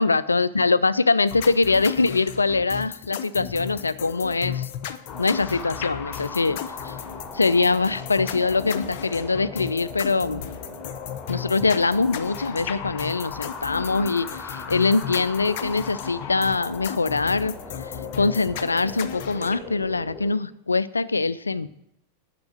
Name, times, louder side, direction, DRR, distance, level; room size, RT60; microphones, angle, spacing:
voice 1, 0.0-4.7 5.2-6.9 7.3-10.4 11.3-17.6 17.9-21.7, left 3 dB, 80° left, 17 dB, 0.4 m, -23 dB
sound 1, 1.3-19.6, left 9 dB, 50° left, 0.7 m, -35 dB
sound 2, 5.1-20.3, left 3 dB, 25° left, 3.3 m, -39 dB
10.5 x 5.9 x 7.8 m, 0.79 s
figure-of-eight pair, 90°, 0 cm